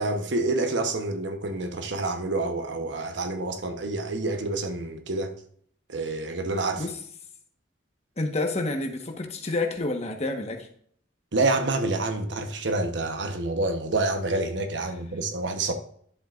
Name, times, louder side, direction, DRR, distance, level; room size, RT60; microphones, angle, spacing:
voice 1, 0.0-5.3 5.9-6.8 11.3-15.7, right 2 dB, 70° right, 1.0 m, -28 dB
voice 2, 8.2-10.7, left 2 dB, 35° left, 1.2 m, -29 dB
11.0 x 7.5 x 2.5 m
head